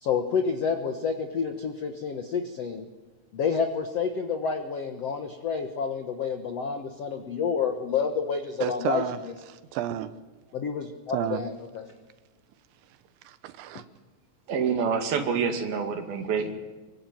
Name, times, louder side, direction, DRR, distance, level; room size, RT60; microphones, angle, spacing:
voice 1, 0.0-2.9 3.3-9.3 10.5-11.9 13.7-13.8, left 6 dB, 80° left, 1.4 m, -29 dB
voice 2, 8.6-9.2 9.5-10.1 11.1-11.4 13.3-13.8, right 12 dB, 85° right, 3.5 m, -31 dB
voice 3, 14.5-16.5, right 6 dB, 60° right, 3.8 m, -27 dB
26.5 x 23.5 x 9.3 m
omnidirectional pair, 5.1 m